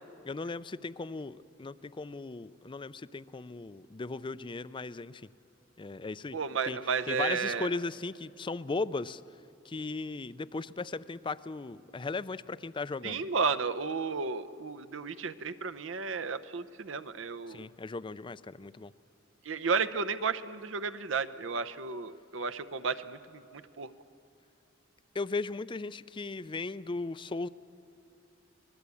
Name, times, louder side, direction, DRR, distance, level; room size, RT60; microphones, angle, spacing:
voice 1, 0.2-5.3 5.8-6.4 6.6-6.8 7.1-9.2 9.6-13.2 17.5-18.9 25.1-27.5, left 3 dB, 25° left, 16 dB, 0.4 m, -37 dB
voice 2, 6.3-7.7 13.0-17.7 19.5-23.9, right 5 dB, 70° right, 11 dB, 0.8 m, -33 dB
25.5 x 20.0 x 8.4 m, 2.7 s
head